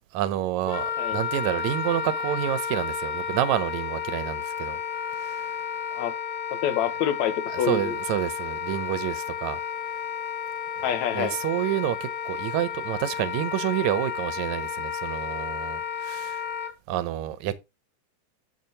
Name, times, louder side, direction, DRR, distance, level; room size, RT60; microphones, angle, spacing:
voice 1, 0.1-4.8 5.1-5.6 7.5-9.6 10.8-10.9 11.1-16.4 16.9-17.6, right 12 dB, 80° right, 2.0 m, -29 dB
Wind instrument woodwind instrument, 0.7-16.7, left 7 dB, 50° left, 2.0 m, -32 dB
voice 2, 6.5-8.0 10.8-11.4, left 9 dB, 75° left, 2.2 m, -27 dB
7.6 x 7.5 x 2.8 m
omnidirectional pair, 3.4 m